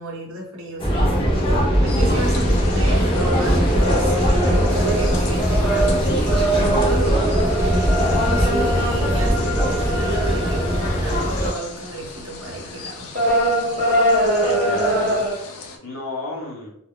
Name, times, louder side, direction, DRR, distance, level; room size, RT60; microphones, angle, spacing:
voice 1, 0.0-13.1, right 1 dB, 65° right, -1 dB, 0.8 m, -33 dB
sound 1, 0.8-11.5, equal, 25° left, 0.6 m, -20 dB
sound 2, 1.9-15.8, left 4 dB, 90° left, 0.5 m, -38 dB
sound 3, 3.1-11.4 11.9-12.1 12.5-15.3, right 1 dB, 30° right, 0.7 m, -23 dB
voice 2, 14.4-16.7, left 2 dB, 60° left, -2 dB, 0.9 m, -34 dB
2.3 x 2.1 x 3.6 m, 0.75 s
head